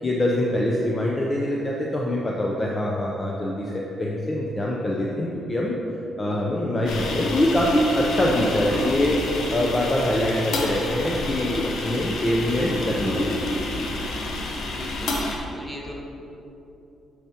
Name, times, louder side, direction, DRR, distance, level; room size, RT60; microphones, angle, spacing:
voice 1, 0.0-5.8 6.2-9.2 9.5-13.3, left 1 dB, 25° left, -3 dB, 0.6 m, -24 dB
sound 1, 6.9-15.4, left 2 dB, 75° left, 0.9 m, -29 dB
voice 2, 14.7-15.9, left 1 dB, 10° left, -2 dB, 1.2 m, -40 dB
8.9 x 4.8 x 2.9 m, 2.9 s
cardioid pair, 90°, 0 cm